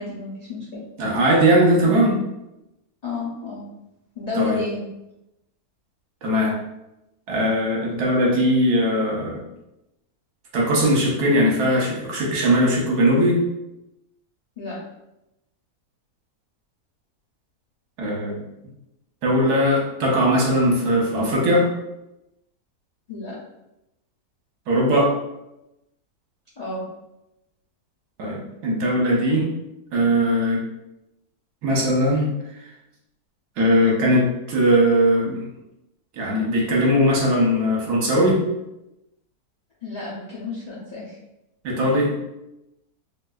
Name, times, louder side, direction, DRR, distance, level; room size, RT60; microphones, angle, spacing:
voice 1, 0.0-0.8 3.0-3.7 4.2-4.8 14.6-14.8 23.1-23.3 26.6-26.8 39.8-41.2, left 3 dB, 75° left, -7 dB, 0.3 m, -31 dB
voice 2, 1.0-2.1 4.3-4.6 6.2-6.6 7.3-9.4 10.5-13.4 18.0-18.4 19.2-21.7 24.7-25.2 28.2-29.5 29.9-30.6 31.6-32.3 33.6-35.4 36.2-38.4 41.6-42.1, equal, 80° right, -3 dB, 1.4 m, -19 dB
3.9 x 2.4 x 2.3 m, 0.90 s
omnidirectional pair, 1.7 m